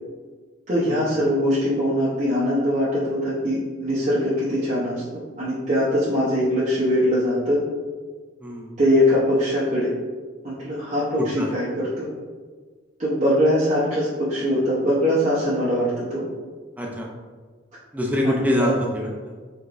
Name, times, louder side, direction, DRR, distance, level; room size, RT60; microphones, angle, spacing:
voice 1, 0.7-7.6 8.8-9.9 10.4-12.1 13.0-16.2 18.4-18.5, equal, 40° right, -9 dB, 0.8 m, -22 dB
voice 2, 8.4-8.7 11.2-11.5 16.8-17.1 17.9-19.3, left 1 dB, 10° right, -1 dB, 0.5 m, -25 dB
4.8 x 3.6 x 2.5 m, 1.5 s
head